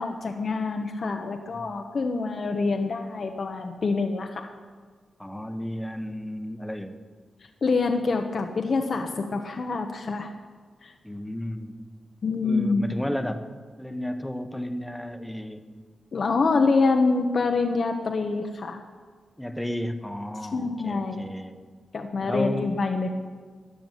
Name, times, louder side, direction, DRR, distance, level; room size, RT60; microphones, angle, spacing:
voice 1, 0.0-4.5 7.6-10.3 10.8-10.9 12.2-13.0 16.1-18.8 20.5-21.3 21.9-23.1, left 4 dB, 55° left, 4 dB, 1.1 m, -26 dB
voice 2, 5.2-6.9 11.0-11.7 12.4-13.5 13.8-15.6 19.4-21.6 22.2-22.7, left 1 dB, 5° left, 8 dB, 1.2 m, -32 dB
14.0 x 10.5 x 9.2 m, 1.5 s
cardioid pair, 90°, 0 cm